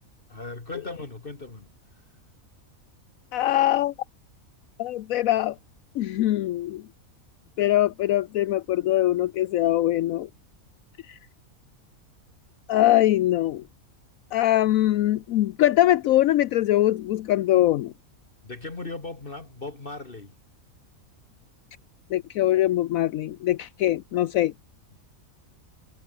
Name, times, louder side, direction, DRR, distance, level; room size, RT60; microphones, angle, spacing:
voice 1, 0.3-1.7 18.4-20.4 24.9-25.0, left 3 dB, 40° left, 2.4 m, -37 dB
voice 2, 3.3-3.9 4.8-5.5 6.0-6.8 7.6-10.3 11.1-11.2 12.7-13.6 14.3-17.9 22.1-24.5, left 14 dB, 75° left, 1.0 m, -22 dB
omnidirectional pair, 1.5 m